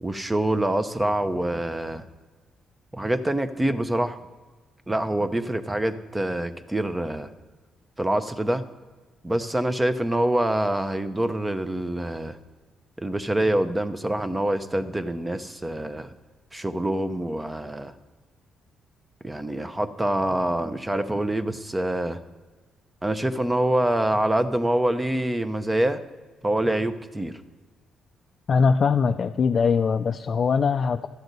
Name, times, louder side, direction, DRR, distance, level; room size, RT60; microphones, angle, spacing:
voice 1, 0.0-2.1 2.9-4.2 4.9-7.3 8.0-8.6 9.2-12.4 13.0-16.1 16.5-17.9 19.2-22.2 23.0-26.0 26.4-27.3, right 1 dB, 15° right, 10 dB, 0.7 m, -25 dB
voice 2, 28.5-31.1, left 5 dB, 45° left, 6 dB, 0.4 m, -21 dB
13.0 x 7.8 x 4.0 m, 1.4 s
cardioid pair, 90°, 0 cm